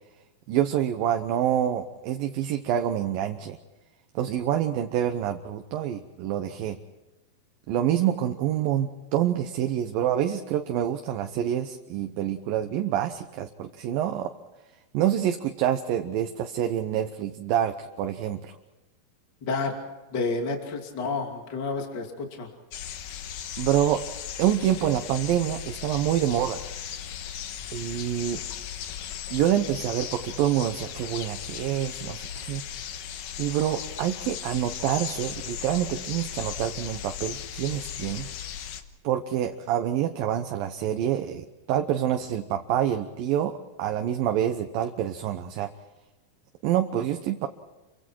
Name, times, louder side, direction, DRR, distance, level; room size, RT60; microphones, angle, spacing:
voice 1, 0.5-3.6 4.2-6.8 7.7-14.3 14.9-18.6 23.6-24.0 24.4-26.6 27.7-28.4 29.3-32.6 33.4-38.3 39.0-45.7 46.6-47.5, right 11 dB, 75° right, 6 dB, 2.7 m, -27 dB
voice 2, 19.4-19.7 20.1-22.5, left 3 dB, 30° left, 2 dB, 3.0 m, -30 dB
sound 1, 22.7-38.8, left 9 dB, 65° left, 2.7 m, -37 dB
29.5 x 24.0 x 4.6 m, 1.1 s
omnidirectional pair, 4.3 m